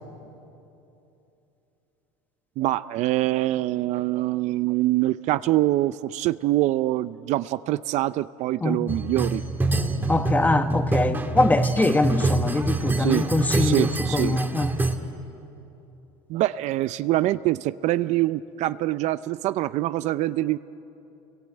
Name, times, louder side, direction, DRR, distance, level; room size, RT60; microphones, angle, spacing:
voice 1, 2.6-9.4 13.0-13.3 13.6-14.4 16.3-20.6, right 16 dB, 55° right, 0.6 m, -24 dB
sound 1, 8.9-15.0, right 2 dB, 15° right, 2.0 m, -26 dB
voice 2, 10.1-14.7, left 2 dB, 10° left, 1.4 m, -23 dB
29.0 x 22.5 x 8.8 m
supercardioid pair, 115°, 14 cm